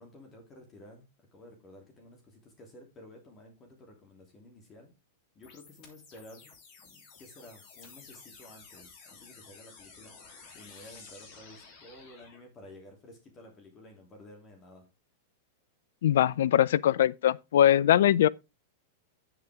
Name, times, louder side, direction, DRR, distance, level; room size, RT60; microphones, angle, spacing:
voice 1, 0.0-4.9 5.3-6.5 6.8-14.8, left 1 dB, 30° left, 3.0 m, -53 dB
sound 1, 5.4-12.4, left 4 dB, 45° left, 3.1 m, -52 dB
voice 2, 16.0-18.3, left 11 dB, 65° left, 0.4 m, -22 dB
9.1 x 7.9 x 3.6 m
hypercardioid pair, 100°, 0 cm